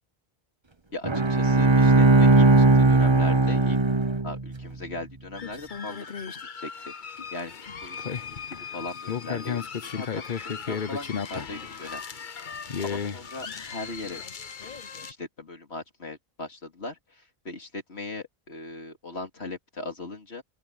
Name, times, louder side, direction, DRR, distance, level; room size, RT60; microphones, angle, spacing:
voice 1, 0.9-3.8 4.2-6.2 6.5-8.1 8.5-12.0 12.8-14.2 15.0-20.4, left 2 dB, 90° left, 3.2 m, -39 dB
Bowed string instrument, 1.0-4.6, right 2 dB, 25° right, 1.2 m, -18 dB
sound 1, 5.4-15.1, left 6 dB, 50° left, 1.1 m, -35 dB
open air
omnidirectional pair, 1.1 m